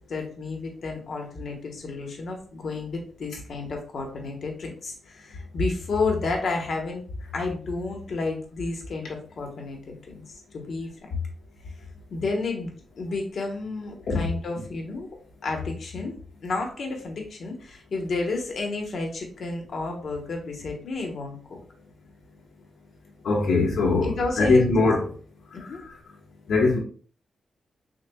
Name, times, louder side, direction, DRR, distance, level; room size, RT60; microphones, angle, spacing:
voice 1, 0.1-7.0 7.3-9.8 10.1-10.2 10.5-11.2 12.1-15.1 15.4-16.1 16.4-21.6 24.0-24.7 25.5-25.8, left 3 dB, 65° left, 1.1 m, -31 dB
voice 2, 23.2-24.1 24.4-25.1 26.5-26.8, left 3 dB, 90° left, 1.3 m, -20 dB
6.5 x 2.3 x 2.3 m
wide cardioid pair, 110°, 0 cm